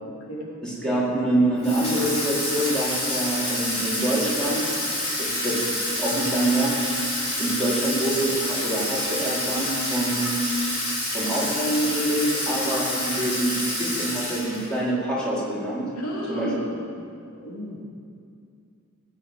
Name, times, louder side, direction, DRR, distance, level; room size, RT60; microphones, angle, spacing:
voice 1, 0.0-0.5 0.8-0.9 15.9-16.8 17.3-17.8, equal, 85° left, -3 dB, 3.5 m, -33 dB
voice 2, 0.6-4.6 5.2-5.7 6.0-6.7 7.4-10.3 11.1-15.9 16.3-16.5, right 1 dB, 5° left, -8 dB, 4.6 m, -25 dB
Water tap faucet / Sink (filling or washing), 1.6-14.8, left 1 dB, 30° left, 4.7 m, -28 dB
19.0 x 9.0 x 7.9 m, 2.4 s
head